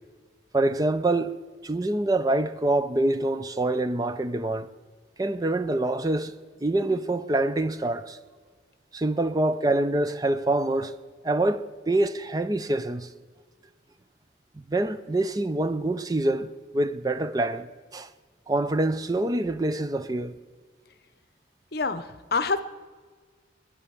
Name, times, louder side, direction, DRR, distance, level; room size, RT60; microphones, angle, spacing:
voice 1, 0.5-1.3 1.6-4.7 5.2-6.3 6.6-8.2 8.9-10.9 11.2-13.1 14.7-16.5 16.7-17.7 17.9-18.1 18.5-20.3, right 2 dB, 20° right, 0.5 m, -25 dB
voice 2, 21.7-22.6, left 4 dB, 55° left, 0.8 m, -27 dB
21.0 x 9.8 x 7.1 m
head